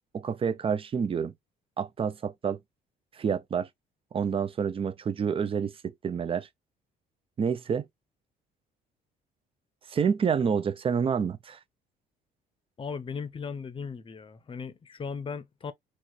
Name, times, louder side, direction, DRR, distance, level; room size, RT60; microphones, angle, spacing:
voice 1, 0.1-1.3 1.8-2.6 3.2-3.7 4.1-5.7 6.0-6.5 7.4-7.8 9.9-11.6, right 6 dB, 35° right, 0.6 m, -28 dB
voice 2, 12.8-15.7, left 5 dB, 30° left, 0.8 m, -37 dB
4.4 x 2.4 x 3.0 m
cardioid pair, 110°, 17 cm